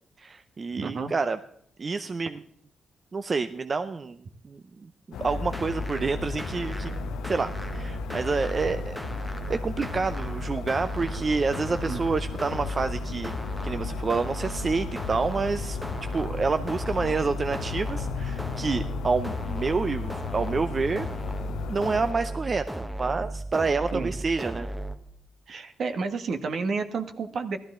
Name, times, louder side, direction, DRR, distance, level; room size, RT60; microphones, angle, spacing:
voice 1, 0.2-1.4 1.8-2.4 3.1-7.0 7.2-9.0 9.5-13.3 13.6-15.8 16.1-21.1 21.7-24.7, right 4 dB, 40° right, 10 dB, 0.5 m, -28 dB
voice 2, 0.8-1.1 11.7-12.0 23.9-24.1 25.5-27.6, right 4 dB, 60° right, 8 dB, 1.2 m, -31 dB
sound 1, 5.1-22.1, left 10 dB, 85° left, 0.5 m, -36 dB
sound 2, 5.2-25.0, right 1 dB, 5° right, 1.1 m, -35 dB
16.0 x 12.5 x 3.7 m, 0.66 s
cardioid pair, 85°, 0 cm